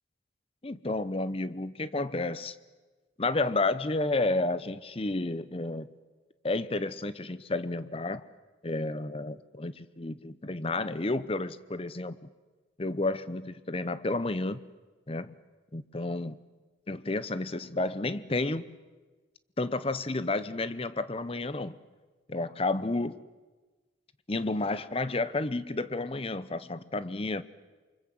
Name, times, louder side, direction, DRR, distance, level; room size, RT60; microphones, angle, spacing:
voice 1, 0.6-2.5 3.2-5.9 6.4-8.2 8.6-12.3 12.8-14.6 15.1-15.3 15.7-16.4 16.9-18.6 19.6-21.8 22.3-23.2 24.3-27.4, left 2 dB, 30° left, 15 dB, 0.8 m, -31 dB
28.0 x 24.5 x 7.8 m, 1.3 s
head